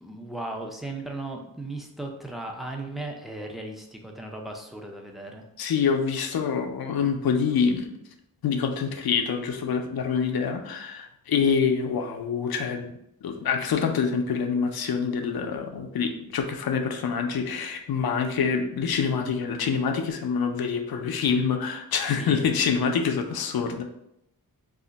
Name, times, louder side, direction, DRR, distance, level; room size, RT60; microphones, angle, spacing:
voice 1, 0.0-5.4 22.1-22.5, right 2 dB, ahead, 1 dB, 0.4 m, -36 dB
voice 2, 5.6-7.9 8.4-12.9 13.2-23.8, left 6 dB, 75° left, 5 dB, 0.5 m, -26 dB
2.4 x 2.1 x 3.8 m, 0.80 s
wide cardioid pair, 75°, 37 cm